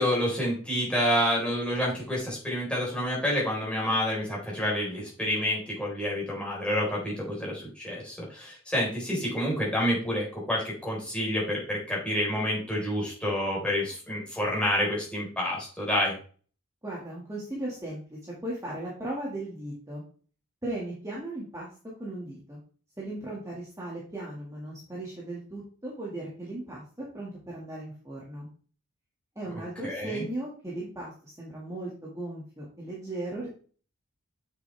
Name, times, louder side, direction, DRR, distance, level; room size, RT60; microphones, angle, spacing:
voice 1, 0.0-16.1 29.8-30.3, equal, 5° left, -5 dB, 4.2 m, -28 dB
voice 2, 16.8-20.0 20.6-21.7 22.0-22.6 23.0-28.5 29.4-33.5, right 1 dB, 15° right, -6 dB, 2.0 m, -37 dB
7.7 x 7.0 x 3.4 m, 0.40 s
head